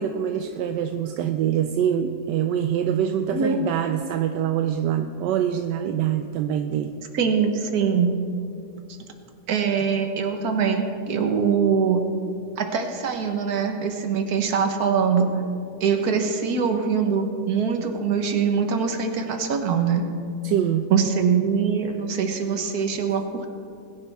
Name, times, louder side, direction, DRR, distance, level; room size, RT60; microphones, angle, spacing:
voice 1, 0.0-6.9 20.4-20.9, right 9 dB, 80° right, 7 dB, 1.2 m, -24 dB
voice 2, 3.3-3.7 7.1-8.1 9.5-12.0 12.6-15.3 15.8-20.1 20.9-23.5, right 6 dB, 60° right, 4 dB, 1.6 m, -23 dB
20.5 x 10.5 x 3.5 m, 2.5 s
omnidirectional pair, 1.9 m